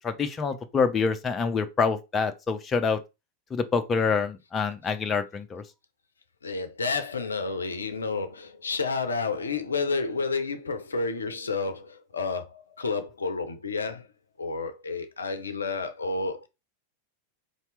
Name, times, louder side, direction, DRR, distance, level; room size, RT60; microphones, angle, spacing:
voice 1, 0.0-3.0 3.5-5.6, left 5 dB, 20° left, 0.5 m, -26 dB
voice 2, 6.4-14.1 14.4-16.5, left 4 dB, 75° left, 0.5 m, -30 dB
4.0 x 2.8 x 3.2 m
figure-of-eight pair, 90°, 0 cm